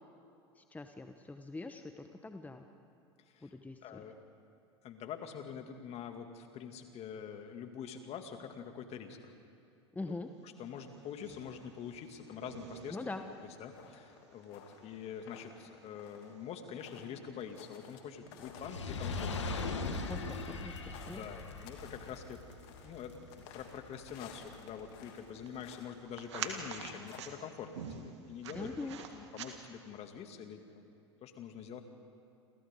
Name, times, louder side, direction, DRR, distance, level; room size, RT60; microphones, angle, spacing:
voice 1, 0.6-2.6 3.4-4.0 9.9-10.3 12.9-13.2 20.1-21.2 28.5-29.0, left 3 dB, 10° left, 6 dB, 1.1 m, -43 dB
voice 2, 3.8-4.2 4.8-9.3 10.0-10.1 10.4-13.2 13.4-19.6 20.4-20.6 21.0-22.4 22.8-28.7 29.1-30.9 31.2-31.8, left 7 dB, 45° left, 5 dB, 2.4 m, -45 dB
sound 1, 10.6-30.0, right 7 dB, 75° right, 2.0 m, -51 dB
sound 2, 10.7-11.8 12.1-18.0 18.3-25.3 25.5-25.9 26.2-27.2, left 8 dB, 65° left, 2.7 m, -56 dB
Fire, 18.5-24.9 25.6-25.7, left 3 dB, 85° left, 1.8 m, -40 dB
28.5 x 28.0 x 3.8 m, 2.6 s
hypercardioid pair, 80°, 15 cm